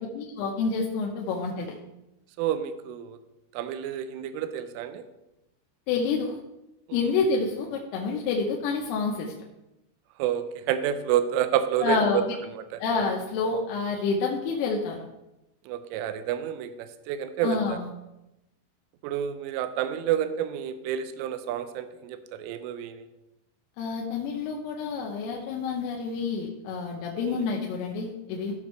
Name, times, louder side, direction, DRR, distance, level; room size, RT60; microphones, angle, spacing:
voice 1, 0.1-1.8 5.9-6.4 6.9-9.3 11.8-12.3 12.8-15.1 17.4-17.9 23.8-28.5, left 4 dB, 90° left, -1 dB, 3.5 m, -28 dB
voice 2, 2.4-3.2 3.5-5.0 6.9-7.1 10.2-12.2 12.5-12.8 15.7-17.8 19.0-23.1 27.2-27.5, right 10 dB, 85° right, 10 dB, 3.1 m, -29 dB
15.0 x 6.0 x 3.1 m, 0.93 s
omnidirectional pair, 5.8 m